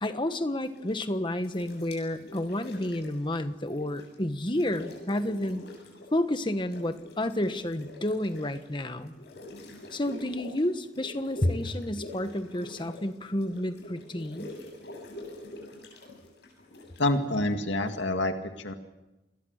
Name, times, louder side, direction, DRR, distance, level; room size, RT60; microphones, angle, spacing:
voice 1, 0.0-5.6 6.1-9.1 9.9-14.5, left 1 dB, 25° left, 9 dB, 1.3 m, -30 dB
sound 1, 0.6-1.1 1.4-4.1 4.4-6.2 6.4-17.9, left 1 dB, 60° left, 7.7 m, -45 dB
voice 2, 17.0-18.7, left 1 dB, 85° left, 6 dB, 2.0 m, -27 dB
28.5 x 21.5 x 6.6 m, 1.0 s
head